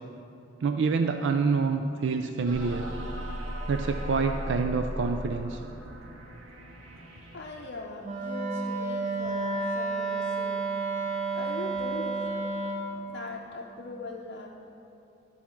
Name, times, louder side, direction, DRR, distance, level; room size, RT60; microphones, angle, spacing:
voice 1, 0.6-2.9 3.7-5.6 12.9-13.0, right 4 dB, 65° right, 6 dB, 0.4 m, -27 dB
sound 1, 2.4-7.9, equal, 90° right, 1.0 m, -37 dB
voice 2, 6.9-14.5, left 2 dB, 60° left, -2 dB, 0.6 m, -41 dB
Wind instrument woodwind instrument, 8.0-12.9, right 3 dB, 40° right, 1.0 m, -31 dB
12.5 x 4.3 x 5.8 m, 2.8 s
head